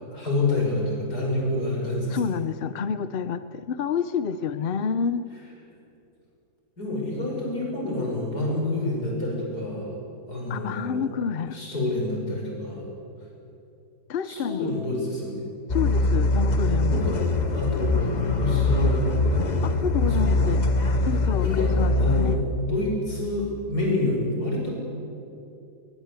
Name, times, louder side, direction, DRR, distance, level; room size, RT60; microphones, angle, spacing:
voice 1, 0.0-2.4 6.8-9.9 10.3-11.1 11.5-12.9 14.2-15.4 16.9-19.6 20.0-20.5 21.4-21.7 22.0-24.7, left 2 dB, 70° left, -2 dB, 6.3 m, -28 dB
voice 2, 2.1-5.2 10.5-11.6 14.1-14.7 15.7-17.0 19.6-20.7 21.0-22.4, left 6 dB, 55° left, 13 dB, 0.6 m, -28 dB
sound 1, 15.7-22.4, left 2 dB, 30° left, 1.1 m, -23 dB
21.0 x 20.5 x 8.2 m, 2.7 s
omnidirectional pair, 1.7 m